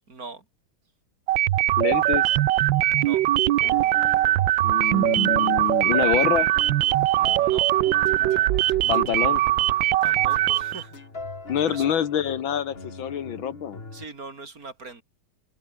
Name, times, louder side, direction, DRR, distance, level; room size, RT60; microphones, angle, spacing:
voice 1, 0.1-0.4 3.0-3.2 7.1-7.7 10.0-11.0 11.7-11.9 13.9-15.0, right 3 dB, 40° right, 3.2 m, -41 dB
sound 1, 1.3-10.8, right 15 dB, 70° right, 1.3 m, -21 dB
voice 2, 1.8-2.3 4.6-6.5 8.9-9.4 11.5-13.8, left 9 dB, 70° left, 2.0 m, -26 dB
sound 2, 3.6-14.0, left 3 dB, 25° left, 3.0 m, -41 dB
sound 3, 8.1-9.3 10.1-11.1, left 6 dB, 90° left, 3.3 m, -49 dB
omnidirectional pair, 2.3 m